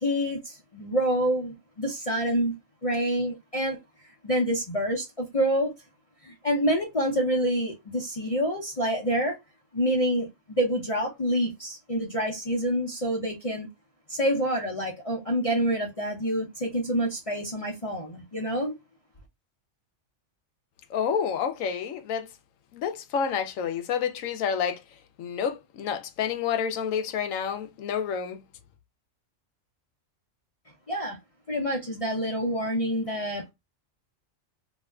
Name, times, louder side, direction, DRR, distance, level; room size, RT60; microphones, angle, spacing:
voice 1, 0.0-2.5 2.8-3.8 4.2-5.7 6.2-9.4 9.7-13.7 14.1-18.8 30.9-31.2 31.5-33.5, equal, 30° left, 0.7 m, -27 dB
voice 2, 20.9-22.3 22.7-24.8 25.2-28.4, left 7 dB, 80° left, 1.0 m, -29 dB
3.3 x 2.9 x 2.3 m
omnidirectional pair, 1.4 m